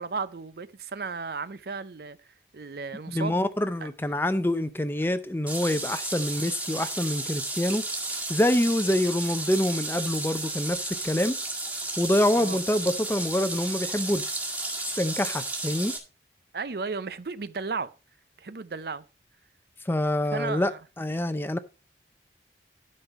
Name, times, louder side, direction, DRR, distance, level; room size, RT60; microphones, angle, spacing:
voice 1, 0.0-2.2 2.5-3.4 3.8-3.9 12.4-12.6 16.5-17.9 18.4-19.0 20.3-20.8, right 4 dB, 60° right, 0.6 m, -34 dB
voice 2, 3.1-7.9 8.3-11.4 12.0-14.2 15.0-15.9 19.9-20.7 21.0-21.6, left 1 dB, 10° left, 0.6 m, -26 dB
sound 1, 5.5-16.0, right 2 dB, 10° right, 1.9 m, -33 dB
11.5 x 5.5 x 4.3 m
head